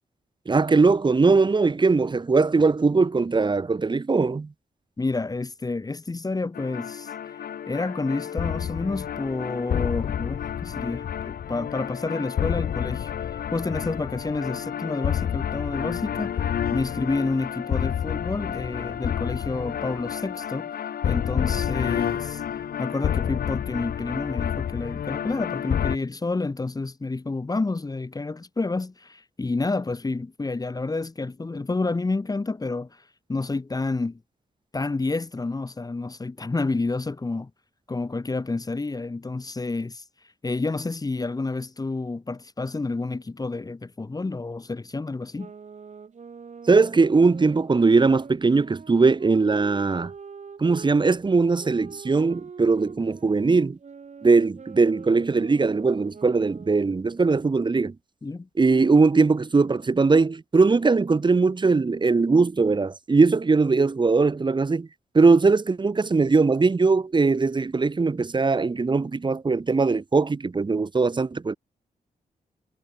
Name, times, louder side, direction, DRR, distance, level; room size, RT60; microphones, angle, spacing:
voice 1, 0.5-4.5 46.7-50.1 50.6-53.8 54.2-57.9 58.6-64.9 65.1-71.6, right 4 dB, 30° right, 1.4 m, -20 dB
voice 2, 5.0-7.1 7.7-20.7 21.0-22.4 22.8-33.0 33.3-34.2 34.7-37.5 37.9-40.0 40.4-45.5 58.2-58.5, left 3 dB, 25° left, 1.7 m, -29 dB
sound 1, 6.6-26.0, left 9 dB, 85° left, 3.4 m, -29 dB
sound 2, 45.3-50.9 51.6-57.0, right 6 dB, 50° right, 4.3 m, -44 dB
cardioid pair, 100°, 15 cm